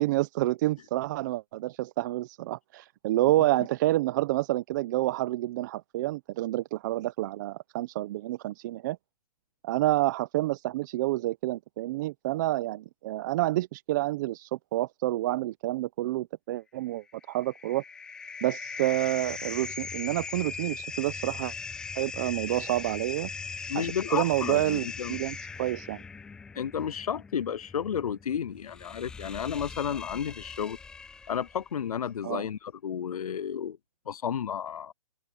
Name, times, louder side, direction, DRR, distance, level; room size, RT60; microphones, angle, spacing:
voice 1, 0.0-9.0 9.6-17.8 18.4-21.5 21.9-23.3 23.7-26.0 32.2-32.5, right 16 dB, 30° right, 1.2 m, -29 dB
sound 1, 17.1-31.7, left 5 dB, 5° left, 0.5 m, -40 dB
voice 2, 23.7-25.2 26.6-30.8 31.3-33.8 34.1-34.9, left 8 dB, 70° left, 0.6 m, -32 dB
open air
hypercardioid pair, 150°, 19 cm